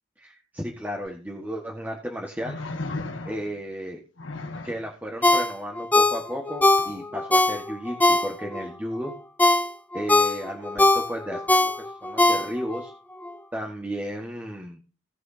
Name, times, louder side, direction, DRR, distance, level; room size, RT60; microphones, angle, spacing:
voice 1, 0.2-2.6 3.2-4.0 4.6-9.1 9.9-12.9 13.5-14.8, equal, 10° right, 0 dB, 1.4 m, -34 dB
sound 1, 1.1-1.2 2.4-3.6 4.2-4.9 6.8-6.9, left 2 dB, 70° left, 1.6 m, -35 dB
Ringtone, 5.2-8.7 9.1-12.8 13.2-13.3, left 2 dB, 10° left, 0.7 m, -21 dB
17.5 x 6.2 x 2.7 m, 0.35 s
head